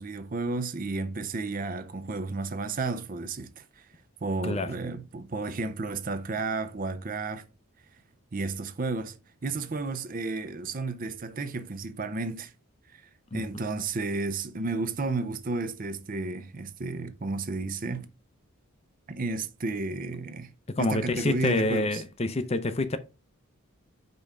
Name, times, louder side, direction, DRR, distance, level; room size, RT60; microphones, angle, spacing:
voice 1, 0.0-3.9 4.2-7.5 8.3-9.2 9.4-12.5 12.9-13.0 13.3-18.1 19.1-20.5 20.8-22.0, right 3 dB, 40° right, 0.5 m, -32 dB
voice 2, 20.7-23.0, left 2 dB, 30° left, 0.6 m, -27 dB
5.3 x 3.6 x 5.4 m
head